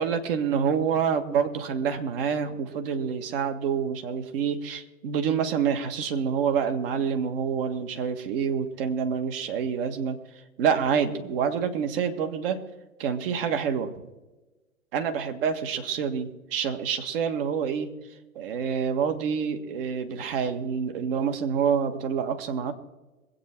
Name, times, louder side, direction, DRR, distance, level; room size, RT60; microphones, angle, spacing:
voice 1, 0.0-10.2 10.6-12.6 13.0-13.9 14.9-17.9 18.3-22.7, right 7 dB, 40° right, 7 dB, 1.7 m, -27 dB
23.0 x 8.5 x 4.5 m, 1.1 s
figure-of-eight pair, 125°, 42 cm